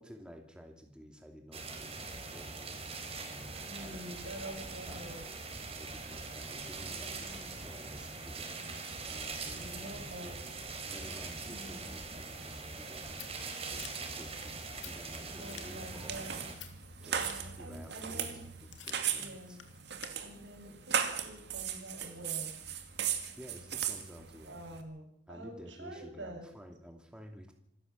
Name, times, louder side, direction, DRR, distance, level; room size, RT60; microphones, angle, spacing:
voice 1, 0.0-2.8 3.3-4.6 4.8-10.4 10.9-13.9 14.2-16.3 17.0-18.3 18.7-19.6 23.4-24.6 25.3-27.5, equal, 5° right, 3 dB, 2.7 m, -52 dB
sound 1, 1.5-16.5, right 3 dB, 35° right, 4.3 m, -42 dB
voice 2, 3.7-5.3 7.0-7.6 9.5-10.4 11.4-11.9 15.3-16.4 17.0-18.5 19.2-19.6 20.2-22.5 24.4-26.5, right 1 dB, 85° right, 2 dB, 7.4 m, -47 dB
Scissors, 12.6-20.1, left 10 dB, 90° left, 2.6 m, -53 dB
sound 2, 15.6-24.8, right 8 dB, 65° right, 2.4 m, -37 dB
26.0 x 13.5 x 7.4 m, 0.69 s
head